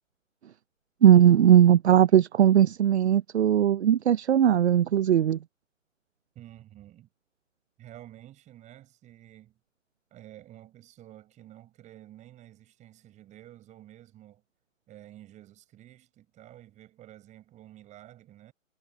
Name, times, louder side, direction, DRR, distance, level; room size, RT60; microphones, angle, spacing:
voice 1, 1.0-5.4, right 10 dB, 55° right, 0.8 m, -19 dB
voice 2, 6.3-7.1 7.8-9.6 10.1-14.4 14.9-18.5, right 13 dB, 15° right, 7.9 m, -50 dB
figure-of-eight pair, 140°, 40 cm